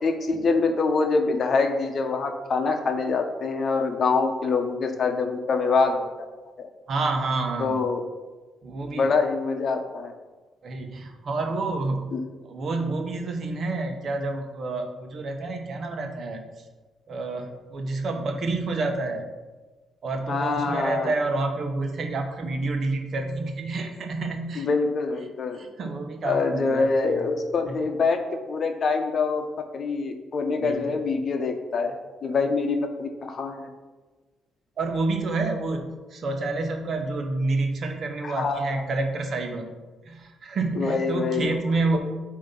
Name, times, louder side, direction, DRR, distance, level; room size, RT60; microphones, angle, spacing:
voice 1, 0.0-6.1 6.6-6.7 7.6-8.0 8.9-10.1 12.1-12.2 20.3-21.1 24.6-25.6 26.2-28.2 28.5-29.4 29.7-33.7 38.2-38.8 40.7-41.6, left 4 dB, 50° left, 5 dB, 0.8 m, -25 dB
voice 2, 6.9-7.7 8.6-9.1 10.6-12.0 12.4-16.4 17.1-19.3 20.0-24.7 25.5-27.3 27.7-27.8 30.6-31.0 32.2-32.3 34.8-39.7 40.0-42.0, right 3 dB, 55° right, 5 dB, 0.9 m, -29 dB
8.1 x 2.9 x 5.2 m, 1.2 s
cardioid pair, 90°, 0 cm